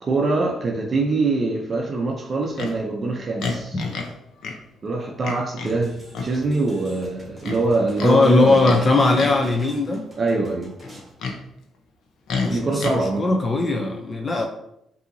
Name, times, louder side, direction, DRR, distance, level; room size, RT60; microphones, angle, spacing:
voice 1, 0.0-3.8 4.8-8.7 10.2-10.7 12.5-13.3, right 3 dB, 40° right, 0 dB, 0.6 m, -24 dB
Livestock farm animals working animals, 2.6-2.8 3.4-4.1 4.4-4.6 5.2-5.8 6.1-6.3 7.4-8.1 8.6-8.8 9.1-9.5 10.8-11.4 12.3-13.0, left 4 dB, 75° left, 0.7 m, -29 dB
sound 1, 5.7-11.1, right 1 dB, 20° right, 1.5 m, -46 dB
voice 2, 8.0-10.0 12.4-14.5, left 3 dB, 30° left, 2 dB, 0.6 m, -19 dB
5.4 x 2.8 x 2.7 m, 0.76 s
cardioid pair, 90°, 0 cm